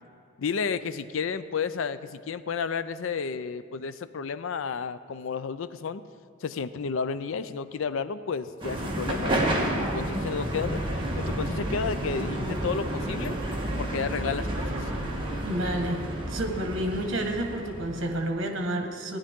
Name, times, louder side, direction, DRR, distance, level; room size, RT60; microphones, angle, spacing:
voice 1, 0.4-6.0 6.4-10.8 11.2-13.4 13.8-14.9, left 5 dB, 70° left, 14 dB, 0.4 m, -32 dB
sound 1, 8.6-18.2, right 1 dB, 25° right, 1.5 m, -30 dB
voice 2, 15.4-16.0 16.3-19.2, right 1 dB, 65° right, 3 dB, 1.5 m, -30 dB
16.5 x 10.5 x 3.7 m, 2.2 s
head